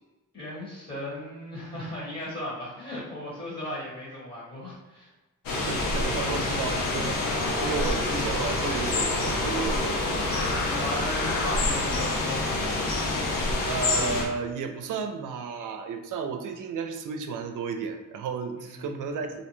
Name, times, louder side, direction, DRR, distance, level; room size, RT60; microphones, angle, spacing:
voice 1, 0.3-5.1 10.5-12.7 18.6-18.8, left 1 dB, 30° left, -7 dB, 1.2 m, -36 dB
sound 1, 5.5-14.3, left 2 dB, 85° left, 0.6 m, -27 dB
voice 2, 5.5-10.7 13.7-19.4, right 5 dB, 70° right, 6 dB, 0.5 m, -33 dB
2.6 x 2.1 x 3.0 m, 1.1 s
cardioid pair, 75°, 33 cm